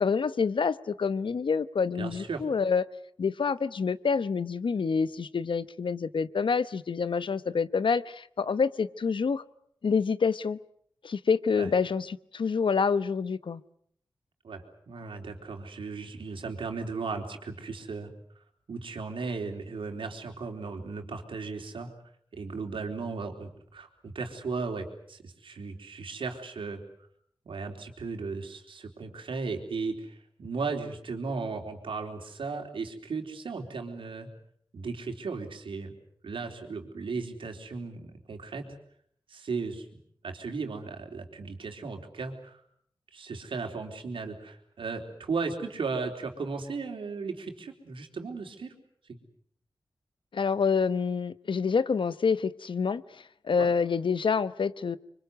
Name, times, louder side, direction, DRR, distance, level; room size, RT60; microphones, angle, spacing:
voice 1, 0.0-2.8 3.2-9.4 9.8-10.6 11.0-13.6 50.3-55.0, left 5 dB, 75° left, 15 dB, 1.0 m, -27 dB
voice 2, 2.0-2.4 11.6-11.7 14.4-18.1 18.7-21.9 22.3-26.8 27.5-34.3 34.7-35.9 36.2-38.7 39.3-39.9 40.2-42.6 43.1-48.7 49.1-49.2 53.6-53.7, right 4 dB, 85° right, 4 dB, 4.0 m, -36 dB
25.5 x 24.5 x 8.1 m, 0.65 s
cardioid pair, 50°, 9 cm